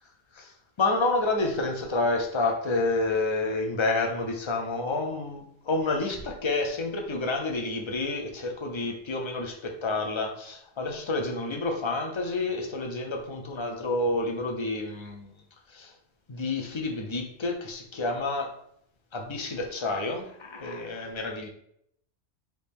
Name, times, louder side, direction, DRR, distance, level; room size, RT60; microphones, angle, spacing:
voice 1, 0.3-15.4 15.7-15.9 16.3-18.5 19.1-21.5, left 2 dB, 30° left, 2 dB, 0.6 m, -29 dB
4.8 x 2.9 x 3.4 m, 0.69 s
omnidirectional pair, 1.3 m